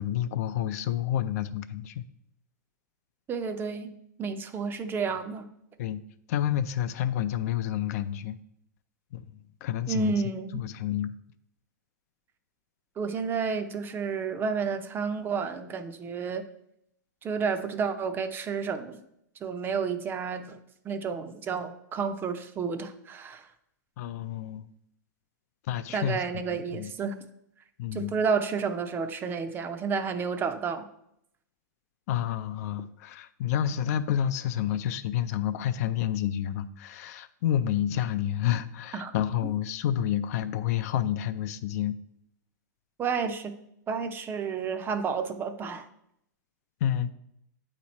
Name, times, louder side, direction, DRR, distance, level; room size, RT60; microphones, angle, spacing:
voice 1, 0.0-2.0 5.8-6.0 6.3-8.4 9.1-9.2 9.6-10.2 10.5-11.1 24.0-24.7 25.7-26.2 26.5-26.9 27.8-28.1 32.1-42.0 46.8-47.1, left 10 dB, 55° left, 12 dB, 0.4 m, -29 dB
voice 2, 3.3-3.9 4.2-5.5 9.9-10.6 13.0-16.4 17.2-19.0 19.4-20.6 20.8-23.5 25.9-27.2 27.9-30.9 38.9-39.1 43.0-43.5 43.9-45.9, right 5 dB, 20° right, 9 dB, 0.5 m, -31 dB
8.3 x 3.0 x 4.2 m, 0.76 s
hypercardioid pair, 125°, 10 cm